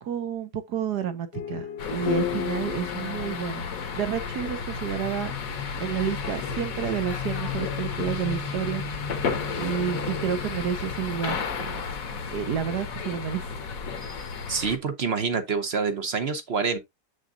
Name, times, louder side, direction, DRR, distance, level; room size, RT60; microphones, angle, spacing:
voice 1, 0.0-3.6 4.0-5.3 5.8-8.8 9.6-11.8 12.3-13.4, right 8 dB, 70° right, 1.5 m, -30 dB
sound 1, 1.3-5.8, left 10 dB, 80° left, 1.4 m, -35 dB
sound 2, 1.8-14.8, left 5 dB, 55° left, 1.4 m, -32 dB
voice 2, 14.5-16.8, right 5 dB, 45° right, 0.9 m, -27 dB
7.3 x 6.3 x 2.5 m
omnidirectional pair, 1.8 m